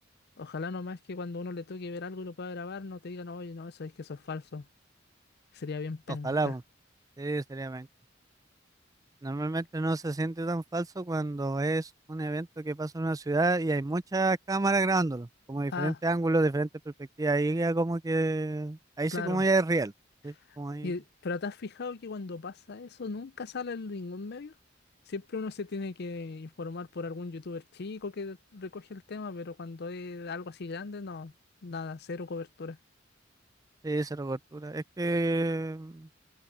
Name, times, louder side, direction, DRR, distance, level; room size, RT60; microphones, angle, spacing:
voice 1, 0.4-4.7 5.5-6.6 15.7-16.0 19.1-19.5 20.8-24.5 25.1-31.3 31.6-32.8, left 4 dB, 55° left, 0.6 m, -38 dB
voice 2, 6.2-6.6 7.2-7.9 9.2-19.9 20.2-20.9 33.8-36.1, right 2 dB, 20° right, 0.4 m, -29 dB
head